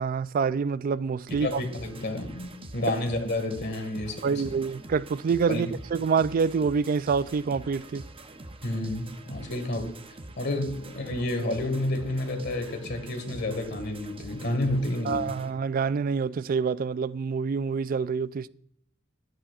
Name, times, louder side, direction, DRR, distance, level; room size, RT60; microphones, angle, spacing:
voice 1, 0.0-1.6 4.2-8.0 15.1-18.5, right 5 dB, 45° right, 0.3 m, -27 dB
voice 2, 1.3-4.5 5.5-5.7 8.6-9.9 10.4-15.4, left 1 dB, 55° left, 1.8 m, -30 dB
sound 1, 1.3-15.5, right 2 dB, 25° right, 0.7 m, -45 dB
13.0 x 11.5 x 2.4 m
head